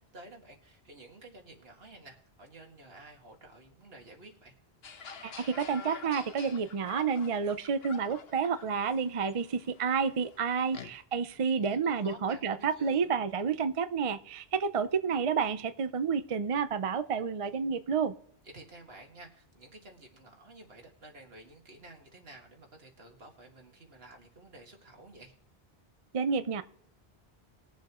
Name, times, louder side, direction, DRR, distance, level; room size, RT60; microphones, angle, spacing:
voice 1, 0.0-4.6 11.3-13.1 18.5-25.3, right 2 dB, 70° right, 2 dB, 2.1 m, -52 dB
sound 1, 4.8-11.0, left 5 dB, 75° left, 1.2 m, -48 dB
voice 2, 5.2-18.1 26.1-26.6, right 6 dB, 40° right, 11 dB, 0.5 m, -30 dB
21.0 x 7.2 x 3.0 m, 0.66 s
omnidirectional pair, 1.0 m